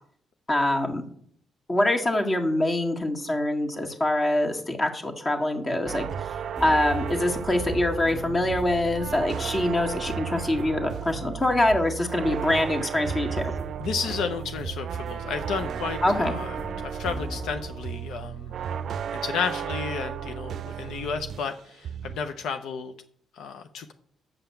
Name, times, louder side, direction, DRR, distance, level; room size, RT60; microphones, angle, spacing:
voice 1, 0.5-1.0 1.7-6.3 6.6-13.5 16.0-16.3, left 1 dB, 30° left, 3 dB, 1.7 m, -24 dB
sound 1, 5.9-21.6 21.8-22.3, right 8 dB, 65° right, 0.4 m, -34 dB
sound 2, 6.6-17.7, right 1 dB, 10° right, 1.5 m, -40 dB
voice 2, 13.8-18.5 19.2-22.9 23.3-23.9, left 6 dB, 80° left, 7 dB, 0.7 m, -32 dB
7.7 x 5.8 x 6.9 m, 0.62 s
cardioid pair, 90°, 0 cm